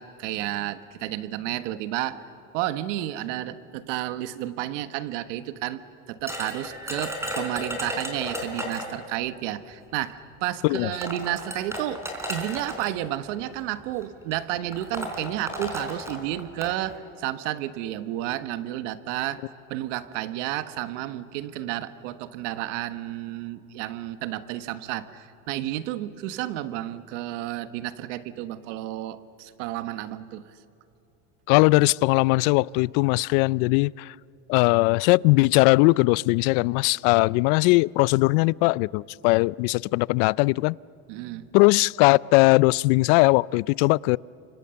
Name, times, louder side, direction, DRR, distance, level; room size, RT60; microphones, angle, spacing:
voice 1, 0.0-2.2 2.5-5.8 6.1-19.4 19.7-30.5 41.1-41.5, right 14 dB, 80° right, 1.4 m, -31 dB
sound 1, 6.3-9.0 10.1-10.2 10.8-12.9 13.8-14.0 14.3-14.4 14.7-16.7, equal, 5° right, 4.6 m, -33 dB
voice 2, 31.5-34.1 34.5-40.8 41.5-44.2, left 24 dB, 75° left, 0.5 m, -20 dB
29.0 x 25.0 x 7.0 m
supercardioid pair, 120°, 36 cm